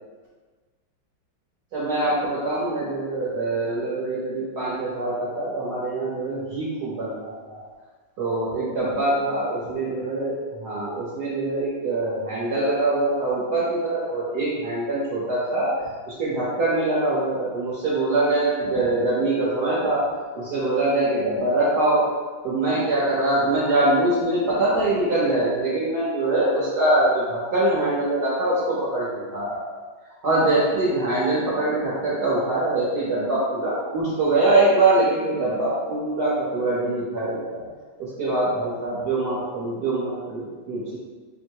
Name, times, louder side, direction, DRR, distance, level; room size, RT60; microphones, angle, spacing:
voice 1, 1.7-7.6 8.2-15.7 16.1-20.0 20.3-22.1 22.4-29.6 30.2-37.6 38.0-41.0, right 2 dB, 60° right, -7 dB, 1.3 m, -23 dB
4.6 x 2.1 x 4.5 m, 1.4 s
omnidirectional pair, 2.1 m